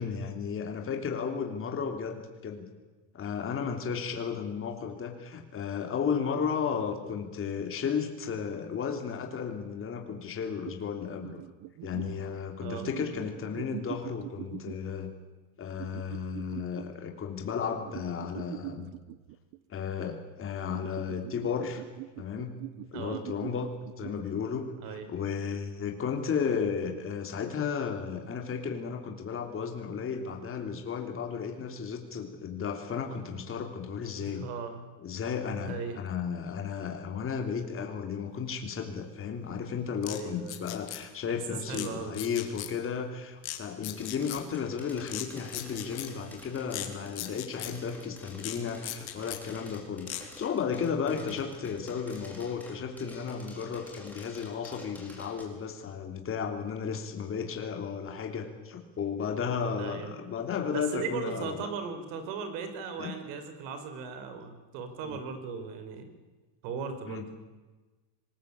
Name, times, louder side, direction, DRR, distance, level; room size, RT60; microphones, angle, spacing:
voice 1, 0.0-2.7 3.1-11.4 11.8-15.1 15.6-18.9 19.7-21.8 22.2-22.6 22.9-34.4 35.0-61.7 63.0-63.1 65.1-65.2 67.1-67.3, left 6 dB, 25° left, 4 dB, 3.2 m, -34 dB
fish speaking to diver, 10.7-10.8 11.2-12.2 12.8-14.9 15.8-16.9 17.8-19.6 20.6-24.6, right 16 dB, 50° right, 1.1 m, -42 dB
voice 2, 22.9-23.2 24.8-25.1 34.2-34.9 35.6-36.0 40.0-40.7 41.5-42.2 51.1-51.3 59.8-60.1 60.7-66.1 66.6-67.3, right 5 dB, 80° right, 9 dB, 5.0 m, -38 dB
sound 1, 40.0-40.2 40.5-41.0 41.7-41.9 42.1-42.7 43.4-43.6 43.8-44.4 45.1-45.2 45.5-46.1 46.7-46.9 47.2-47.7 48.4-48.6 48.8-49.4 50.1-50.2, left 15 dB, 50° left, 3.1 m, -37 dB
sound 2, 43.9-55.4, left 2 dB, 5° left, 4.3 m, -49 dB
25.5 x 20.5 x 8.5 m, 1.2 s
cardioid pair, 165°, 47 cm